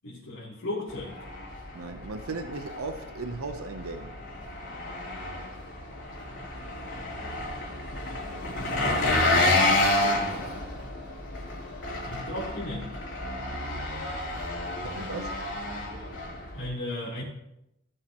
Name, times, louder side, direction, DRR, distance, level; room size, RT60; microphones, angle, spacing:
voice 1, 0.0-1.2 8.6-9.6 12.0-13.0 16.5-17.2, left 1 dB, 80° left, -9 dB, 3.3 m, -36 dB
Engine, 0.9-16.7, left 2 dB, 60° left, 3.4 m, -30 dB
voice 2, 1.7-4.2 10.3-10.7 14.8-15.4, right 3 dB, 80° right, 7 dB, 0.8 m, -37 dB
17.5 x 7.9 x 3.0 m, 0.84 s
head